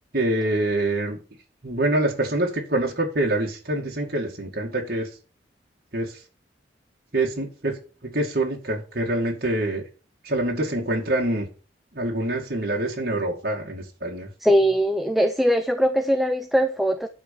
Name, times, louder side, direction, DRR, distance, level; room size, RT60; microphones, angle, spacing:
voice 1, 0.1-1.2 1.6-5.1 5.9-6.2 7.1-7.7 8.0-9.8 10.2-11.5 11.9-14.3, right 1 dB, 55° right, 2.3 m, -25 dB
voice 2, 14.4-17.1, equal, ahead, 0.5 m, -21 dB
11.0 x 4.6 x 7.1 m
head